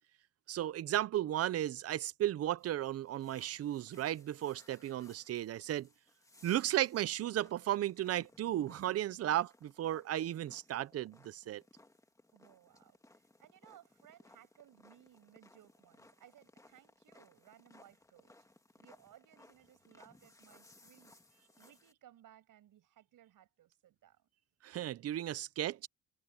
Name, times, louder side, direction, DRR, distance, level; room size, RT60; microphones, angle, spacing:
voice 1, 0.5-5.9 6.4-11.6 24.6-25.9, right 13 dB, 45° right, 0.6 m, -35 dB
sound 1, 2.6-21.9, left 2 dB, 10° left, 1.8 m, -63 dB
voice 2, 12.3-18.3 18.8-24.3, right 12 dB, 65° right, 6.3 m, -62 dB
cardioid pair, 150°, 34 cm